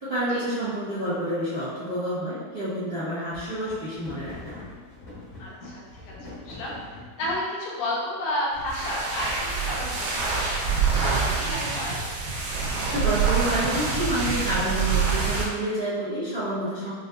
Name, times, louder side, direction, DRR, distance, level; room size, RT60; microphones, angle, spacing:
voice 1, 0.0-4.6 12.9-16.9, right 1 dB, 65° right, -13 dB, 0.5 m, -28 dB
sound 1, 3.0-7.5 8.3-9.6 10.0-10.6 11.1-12.9, left 2 dB, 65° left, 0.7 m, -45 dB
voice 2, 5.4-6.8 7.2-10.6 11.0-12.0 16.8-16.9, left 1 dB, 90° left, -4 dB, 2.4 m, -32 dB
sound 2, 8.5-15.5, right 5 dB, 85° right, 2.2 m, -26 dB
6.2 x 2.5 x 2.5 m, 1.5 s
omnidirectional pair, 3.5 m